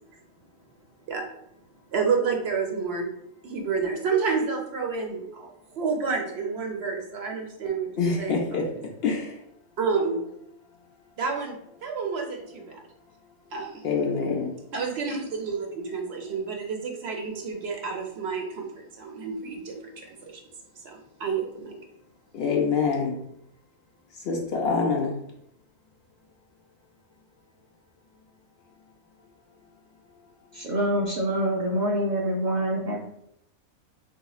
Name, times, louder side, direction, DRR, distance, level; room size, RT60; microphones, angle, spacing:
voice 1, 1.9-3.1 3.4-8.8 9.8-10.2 11.2-12.8 13.5-13.8 14.7-20.4 20.8-21.7, right 5 dB, 60° right, 1 dB, 0.8 m, -29 dB
voice 2, 8.0-8.6 9.0-9.3 13.8-14.5 22.3-23.2 24.2-25.1, left 5 dB, 60° left, 0 dB, 0.7 m, -25 dB
voice 3, 30.5-33.0, right 1 dB, 90° right, -3 dB, 0.4 m, -26 dB
4.0 x 2.7 x 2.3 m, 0.75 s
omnidirectional pair, 1.3 m